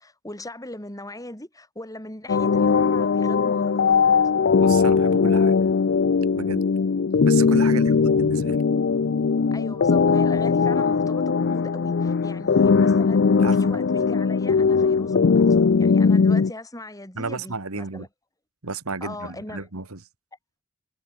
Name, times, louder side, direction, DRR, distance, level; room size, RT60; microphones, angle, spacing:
voice 1, 0.0-4.1 7.7-8.1 9.5-13.2 13.5-18.1 19.0-19.7, left 1 dB, 15° left, 7.6 m, -39 dB
sound 1, 2.3-16.5, left 5 dB, 55° left, 0.5 m, -19 dB
voice 2, 4.6-5.6 6.3-6.6 7.3-8.6 13.4-13.8 17.2-18.1 18.6-20.0, right 3 dB, 85° right, 2.3 m, -33 dB
head